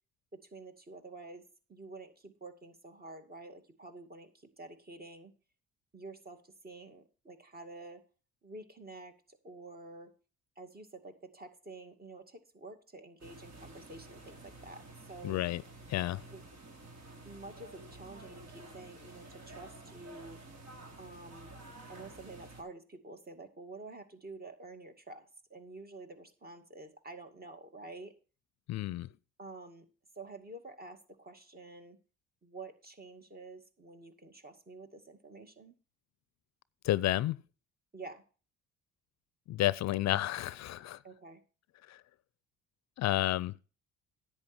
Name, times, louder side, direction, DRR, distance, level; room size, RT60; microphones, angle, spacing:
voice 1, 0.3-1.4 1.7-5.3 5.9-8.0 8.4-10.1 10.6-15.4 16.3-16.4 17.2-20.4 21.0-21.5 21.9-28.1 29.4-29.9 30.2-32.0 32.4-35.7 37.9-38.2 41.0-41.4, right 2 dB, 30° right, 2.3 m, -49 dB
sound 1, 13.2-22.6, right 2 dB, 60° right, 3.7 m, -51 dB
voice 2, 15.2-15.6 15.9-16.2 28.7-29.1 36.8-37.4 39.5-41.0 41.9-42.0 43.0-43.5, left 15 dB, 60° left, 0.5 m, -31 dB
10.5 x 8.5 x 4.4 m
supercardioid pair, 75°, 31 cm